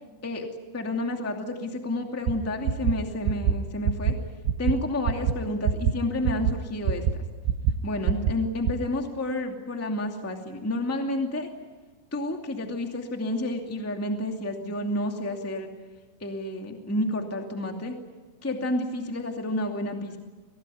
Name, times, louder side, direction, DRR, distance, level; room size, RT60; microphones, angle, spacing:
voice 1, 0.7-4.1 4.6-7.0 7.8-11.5 12.1-15.7 16.2-17.9 18.4-20.2, left 1 dB, 10° left, 3 dB, 0.6 m, -30 dB
sound 1, 2.3-2.4 2.7-2.9 3.3-3.5 3.9-4.1 4.5-4.7 5.1-5.3 5.7-5.9 6.3-6.5 6.9-7.1 7.5-7.7 8.1-8.3 8.7-8.8, right 8 dB, 75° right, 3.0 m, -23 dB
25.5 x 18.5 x 9.4 m, 1.3 s
omnidirectional pair, 5.3 m